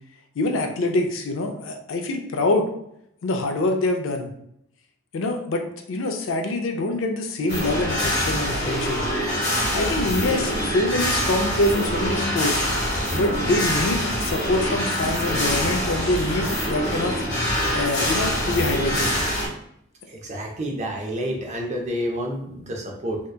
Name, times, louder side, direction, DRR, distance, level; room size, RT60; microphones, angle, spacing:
voice 1, 0.4-2.7 3.2-4.3 5.1-9.1 9.7-12.6 13.1-17.2 17.7-19.1, left 2 dB, 75° left, 3 dB, 0.4 m, -25 dB
sound 1, 7.5-19.5, equal, 55° left, 1.1 m, -25 dB
voice 2, 20.2-23.2, equal, 35° right, 1 dB, 0.5 m, -29 dB
2.8 x 2.2 x 2.2 m, 0.73 s
head